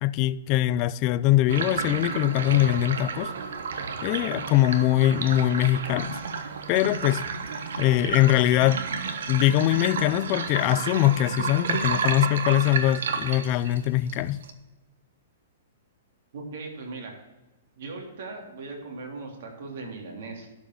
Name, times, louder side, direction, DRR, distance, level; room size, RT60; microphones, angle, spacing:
voice 1, 0.0-3.3 4.0-6.2 6.7-7.3 7.8-8.8 9.3-14.4, left 14 dB, 30° left, 0.4 m, -22 dB
sound 1, 1.5-14.5, right 5 dB, 75° right, 1.3 m, -31 dB
voice 2, 16.3-17.2 17.8-20.5, right 3 dB, 60° right, 3.2 m, -38 dB
11.5 x 5.2 x 8.1 m
hypercardioid pair, 165°, 0 cm